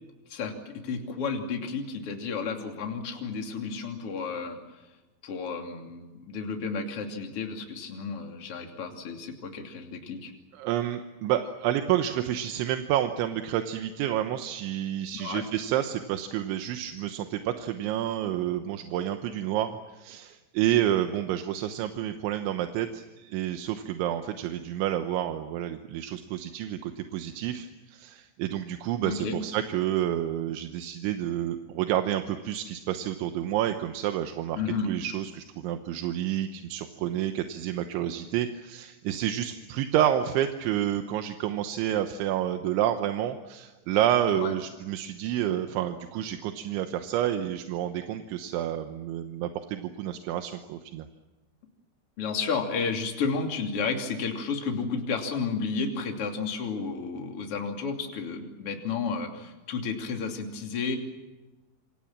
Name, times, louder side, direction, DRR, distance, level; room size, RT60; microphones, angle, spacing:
voice 1, 0.3-4.6 5.2-10.3 15.1-15.4 29.0-29.4 34.5-34.9 44.4-44.5 52.2-61.0, left 5 dB, 35° left, 3 dB, 3.1 m, -32 dB
voice 2, 10.5-51.1, right 11 dB, 85° right, 7 dB, 3.4 m, -29 dB
27.5 x 25.5 x 7.4 m, 1.1 s
omnidirectional pair, 5.3 m